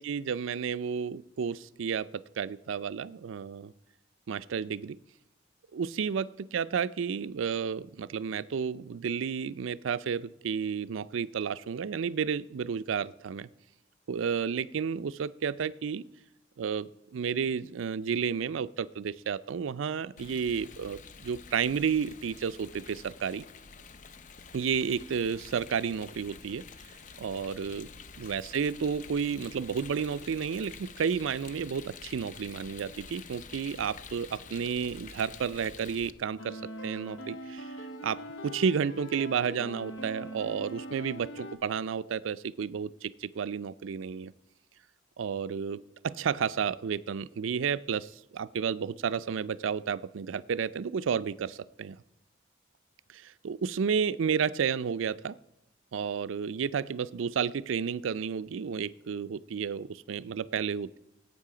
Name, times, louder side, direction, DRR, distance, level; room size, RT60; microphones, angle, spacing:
voice 1, 0.0-3.7 4.3-5.0 5.7-13.5 14.1-16.0 16.6-23.4 24.5-26.6 27.2-27.9 28.2-44.3 45.2-52.0 53.1-55.4 55.9-61.0, right 6 dB, 90° right, 16 dB, 0.4 m, -32 dB
Rain, 20.2-36.1, left 5 dB, 40° left, 0.5 m, -48 dB
sound 1, 36.4-41.6, equal, 85° left, 1.1 m, -42 dB
17.5 x 8.4 x 4.9 m, 0.90 s
head